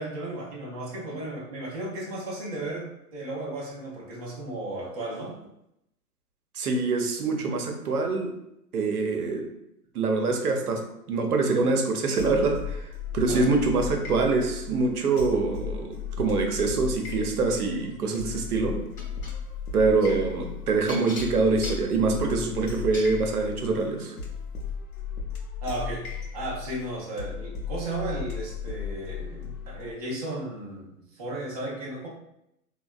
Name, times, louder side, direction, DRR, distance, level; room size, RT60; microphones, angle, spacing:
voice 1, 0.0-5.3 13.3-13.5 20.0-20.2 25.6-26.1 26.3-32.1, right 1 dB, 30° right, -5 dB, 0.3 m, -35 dB
voice 2, 6.5-8.3 8.7-9.5 9.9-18.8 19.7-24.1, right 3 dB, 65° right, 3 dB, 0.7 m, -25 dB
sound 1, 12.2-29.9, left 6 dB, 65° left, 0.7 m, -36 dB
sound 2, 19.0-19.4 20.9-23.1 24.1-24.2 24.7-24.8, left 1 dB, 20° left, 0.6 m, -39 dB
3.2 x 2.3 x 2.2 m, 0.81 s
figure-of-eight pair, 120°, 47 cm